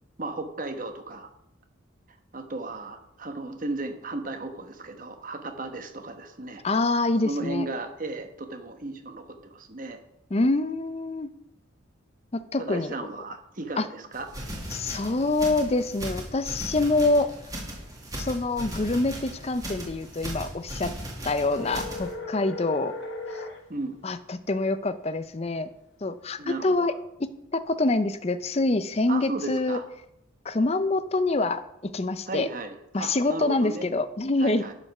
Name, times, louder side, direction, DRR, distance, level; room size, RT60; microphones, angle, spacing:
voice 1, 0.2-1.3 2.3-6.6 7.2-10.0 12.6-14.3 23.7-24.0 26.4-26.9 29.1-29.8 32.3-33.9 34.4-34.7, right 2 dB, 40° right, 7 dB, 1.0 m, -35 dB
voice 2, 6.6-7.7 10.3-11.3 12.3-12.9 13.8-13.9 14.7-17.3 18.2-20.9 21.2-22.9 24.0-25.7 26.0-26.9 27.2-29.8 30.4-32.5 32.9-34.6, left 2 dB, 30° left, 12 dB, 0.5 m, -26 dB
sound 1, 14.1-22.1, equal, 15° right, 1.8 m, -37 dB
sound 2, 21.5-23.6, left 2 dB, 65° left, 2.0 m, -36 dB
10.5 x 5.2 x 5.9 m, 0.81 s
head